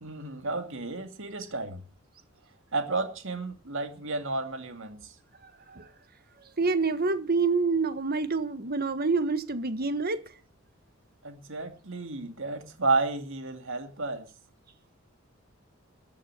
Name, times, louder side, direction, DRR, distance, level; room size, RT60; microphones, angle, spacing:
voice 1, 0.0-1.8 2.7-5.0 11.2-14.2, right 3 dB, 65° right, 2.5 m, -31 dB
voice 2, 6.6-10.2, right 4 dB, 50° right, 1.5 m, -27 dB
14.5 x 8.6 x 8.3 m
head